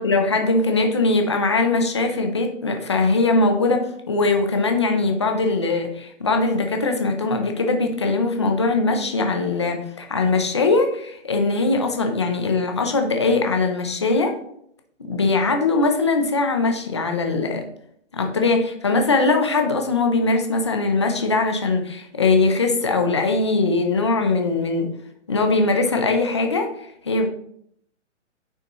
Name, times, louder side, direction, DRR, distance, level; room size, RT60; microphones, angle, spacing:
voice 1, 0.0-14.4 15.1-17.6 18.1-24.9 25.3-27.3, left 3 dB, 25° left, 4 dB, 0.5 m, -21 dB
9.1 x 5.8 x 3.0 m, 0.69 s
hypercardioid pair, 175°, 37 cm